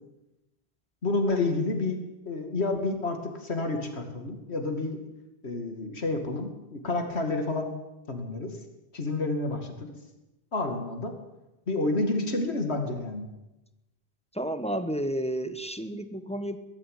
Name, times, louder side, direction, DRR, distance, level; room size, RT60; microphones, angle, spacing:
voice 1, 1.0-2.0 2.3-5.0 5.4-7.7 8.1-8.5 8.9-9.9 10.5-11.1 11.7-13.2, left 2 dB, 75° left, 5 dB, 2.7 m, -29 dB
voice 2, 14.3-16.6, right 1 dB, 5° left, 10 dB, 1.2 m, -31 dB
22.0 x 13.0 x 9.6 m, 0.97 s
omnidirectional pair, 1.1 m